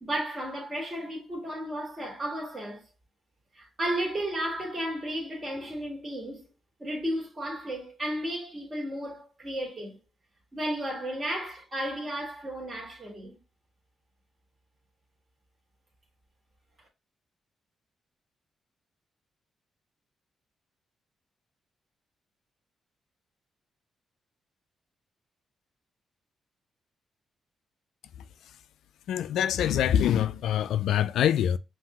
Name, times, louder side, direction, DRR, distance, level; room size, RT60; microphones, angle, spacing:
voice 1, 0.0-2.9 3.5-6.5 6.8-10.0 10.5-13.4, right 1 dB, 30° right, 1.8 m, -33 dB
voice 2, 29.1-31.6, left 10 dB, 85° left, 0.3 m, -24 dB
5.7 x 2.6 x 2.9 m
cardioid pair, 75°, 0 cm